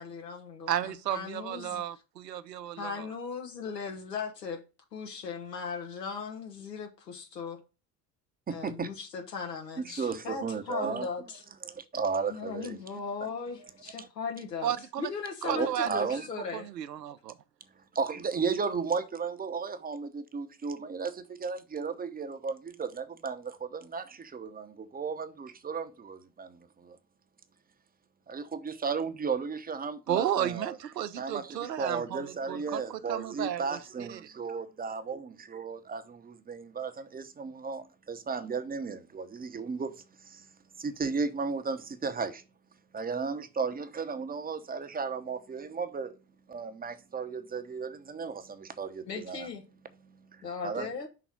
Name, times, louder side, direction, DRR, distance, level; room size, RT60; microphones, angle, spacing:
voice 1, 0.0-1.8 2.8-4.6 4.9-7.6 8.5-11.4 12.3-14.7 15.0-16.7 49.1-49.6 50.4-51.1, left 5 dB, 80° left, 1.5 m, -38 dB
voice 2, 0.7-3.1 14.6-15.1 15.4-16.2 16.5-17.3 30.1-34.2, right 11 dB, 80° right, 0.7 m, -33 dB
voice 3, 8.5-8.9 9.8-11.1 11.6-12.8 14.0-14.1 15.4-16.3 17.7-27.0 28.3-30.8 31.2-42.4 42.7-49.5 49.9-50.9, right 5 dB, 20° right, 0.8 m, -35 dB
5.8 x 3.9 x 5.8 m
figure-of-eight pair, 60°, 49 cm